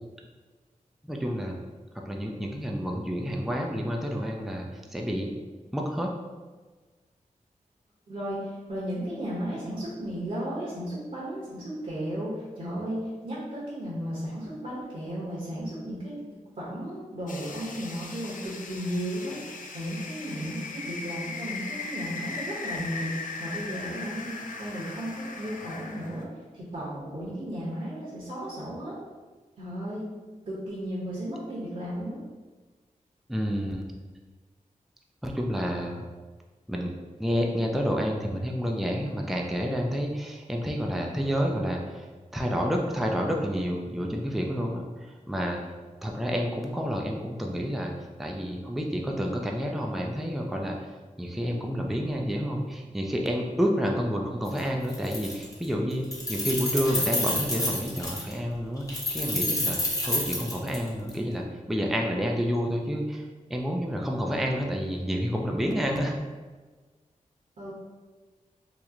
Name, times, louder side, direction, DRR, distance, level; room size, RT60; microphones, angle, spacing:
voice 1, 1.1-1.6 2.1-4.7 4.9-5.3 5.7-6.1 33.3-33.9 35.2-36.0 36.7-36.9 37.2-42.1 42.3-44.9 45.3-45.6 46.0-47.9 48.2-50.8 51.2-63.2 63.5-66.1, equal, ahead, 1 dB, 0.4 m, -29 dB
voice 2, 8.1-19.4 19.7-26.3 26.5-28.9 29.6-30.1 30.5-32.2 67.6-67.7, equal, 60° right, -8 dB, 1.0 m, -34 dB
sound 1, 17.3-26.2, left 4 dB, 75° left, 0.4 m, -38 dB
Keys jangling, 54.5-54.6 54.9-55.7 55.9-58.3 58.9-61.1, left 1 dB, 25° left, 0.9 m, -29 dB
3.0 x 2.1 x 3.6 m, 1.3 s
cardioid pair, 65°, 14 cm